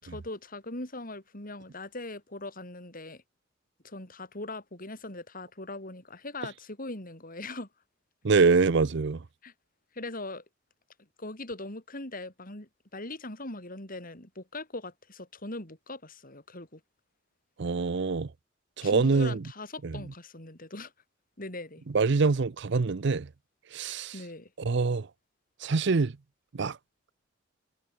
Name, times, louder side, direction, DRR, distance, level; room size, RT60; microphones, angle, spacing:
voice 1, 0.0-3.2 3.8-7.7 9.4-9.5 9.9-10.4 11.2-16.8 18.8-20.9 21.4-21.8 24.1-24.5, left 2 dB, 45° left, 5.6 m, -40 dB
voice 2, 8.2-9.2 17.6-18.3 18.8-19.4 19.8-20.0 21.9-23.3 23.7-24.1 24.6-25.1 25.6-26.1 26.5-26.8, right 4 dB, 65° right, 0.6 m, -25 dB
head